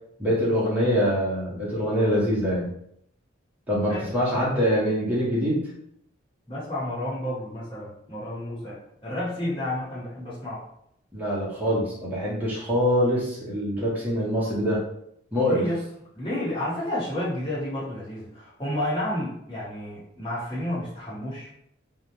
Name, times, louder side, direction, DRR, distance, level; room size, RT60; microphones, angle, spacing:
voice 1, 0.2-2.7 3.7-5.6 11.1-14.8 15.3-15.6, equal, 10° right, -7 dB, 0.6 m, -24 dB
voice 2, 6.5-10.6 15.3-15.8 16.1-21.5, left 1 dB, 25° left, -10 dB, 1.1 m, -31 dB
2.3 x 2.0 x 2.9 m, 0.72 s
head